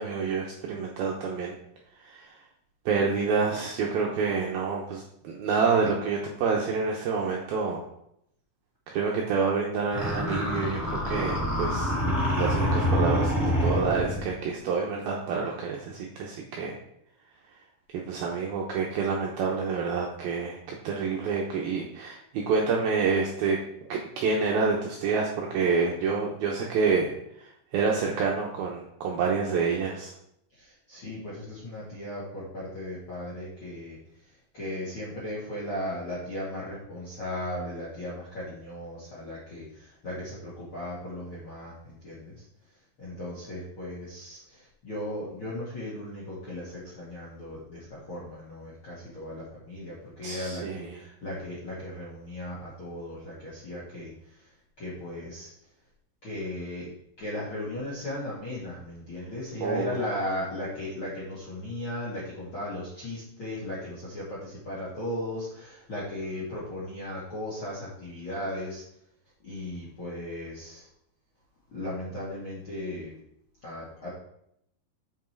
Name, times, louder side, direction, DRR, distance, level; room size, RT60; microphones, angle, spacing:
voice 1, 0.0-1.6 2.0-2.4 2.9-7.9 8.9-11.9 12.4-13.3 13.6-16.8 17.9-23.6 23.9-30.1 50.2-50.8 59.6-59.9, right 5 dB, 80° right, -1 dB, 2.2 m, -28 dB
sound 1, 9.9-14.3, equal, 5° left, 2.6 m, -26 dB
voice 2, 30.5-55.7 56.2-56.9 57.2-68.8 69.4-70.9 71.7-73.1 73.6-74.1, left 1 dB, 50° left, -7 dB, 1.5 m, -37 dB
7.5 x 5.9 x 4.5 m, 0.75 s
omnidirectional pair, 5.3 m